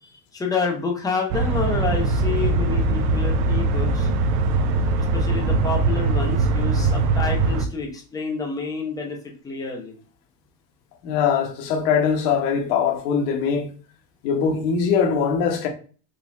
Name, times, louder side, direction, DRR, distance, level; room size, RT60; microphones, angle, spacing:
voice 1, 0.0-4.1 5.0-9.2 9.4-10.0, left 4 dB, 10° left, 0.4 m, -28 dB
sound 1, 1.3-7.7, right 3 dB, 60° right, 0.6 m, -21 dB
voice 2, 11.0-13.7 14.2-15.7, left 6 dB, 75° left, 1.1 m, -21 dB
4.0 x 2.3 x 4.2 m
cardioid pair, 160°, 50 cm